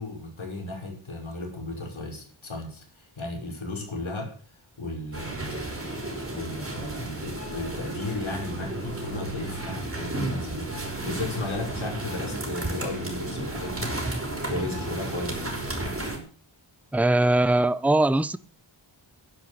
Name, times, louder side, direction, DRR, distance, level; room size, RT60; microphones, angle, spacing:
voice 1, 0.0-4.3 4.8-6.0 6.3-14.0 14.5-15.6, left 2 dB, 85° left, 5.5 m, -35 dB
sound 1, 5.1-16.2, right 2 dB, 30° right, 5.4 m, -33 dB
voice 2, 16.9-18.4, right 2 dB, 5° right, 0.7 m, -21 dB
11.0 x 11.0 x 8.2 m
wide cardioid pair, 85°, 46 cm